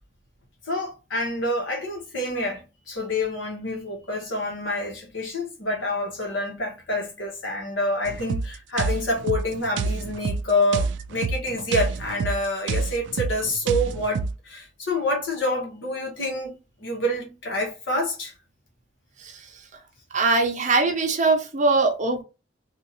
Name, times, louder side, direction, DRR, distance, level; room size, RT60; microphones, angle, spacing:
voice 1, 0.7-18.3, left 1 dB, 85° left, 1.2 m, -27 dB
sound 1, 8.1-14.4, right 4 dB, 70° right, 0.3 m, -28 dB
voice 2, 20.1-22.2, right 3 dB, 40° right, 0.6 m, -21 dB
3.5 x 2.4 x 2.8 m
head